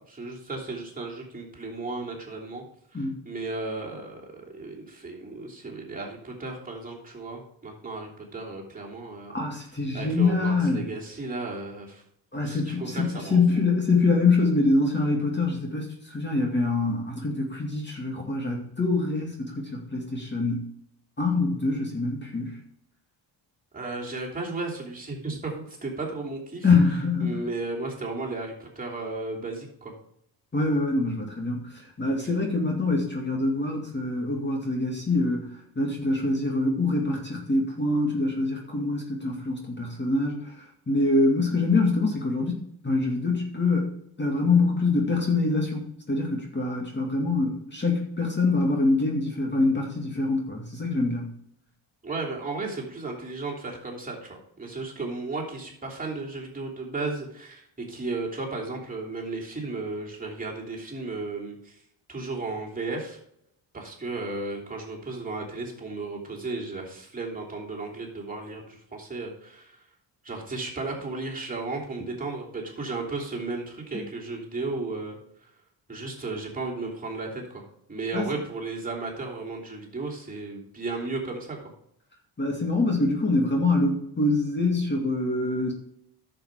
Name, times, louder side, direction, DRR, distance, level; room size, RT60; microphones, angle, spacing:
voice 1, 0.1-2.6 2.9-9.3 9.9-12.0 12.4-13.4 23.7-26.7 27.2-29.9 32.2-32.3 52.0-61.8 62.1-63.2 63.7-69.8 70.2-75.2 75.9-77.6 77.9-81.6, right 3 dB, 20° right, -3 dB, 3.1 m, -34 dB
voice 2, 9.3-10.9 12.3-20.7 21.2-22.6 26.6-27.4 30.5-35.5 35.8-40.5 40.9-43.9 44.2-51.3 78.1-78.3 82.4-85.7, left 3 dB, 25° left, 0 dB, 2.3 m, -25 dB
10.5 x 7.2 x 4.9 m, 0.72 s
cardioid pair, 110°, 46 cm